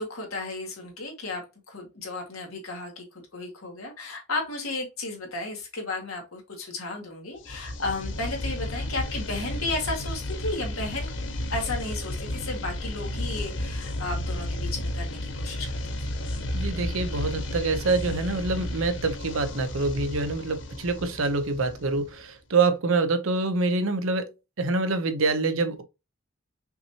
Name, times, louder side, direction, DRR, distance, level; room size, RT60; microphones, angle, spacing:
voice 1, 0.0-16.1, left 2 dB, 85° left, 1.9 m, -34 dB
sound 1, 7.4-22.2, left 1 dB, 55° left, 0.7 m, -33 dB
voice 2, 16.5-24.3 24.6-25.8, right 3 dB, 75° right, 0.7 m, -26 dB
5.8 x 2.9 x 2.8 m
head